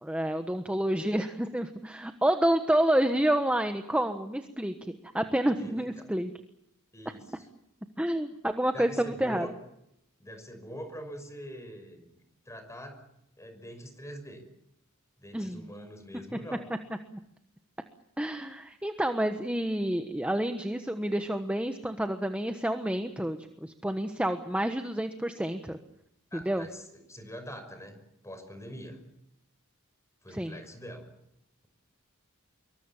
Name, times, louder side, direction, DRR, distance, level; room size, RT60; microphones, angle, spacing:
voice 1, 0.0-6.3 8.0-9.5 15.3-15.6 18.2-25.8 26.3-26.7 30.3-30.6, right 1 dB, 5° right, 7 dB, 1.2 m, -29 dB
voice 2, 5.6-6.1 6.9-7.5 8.7-9.5 10.2-12.1 12.5-13.0 13.4-14.4 15.2-16.7 26.3-28.0 28.2-29.1 30.2-31.1, equal, 15° left, 8 dB, 5.8 m, -44 dB
26.5 x 23.5 x 7.3 m, 0.79 s
head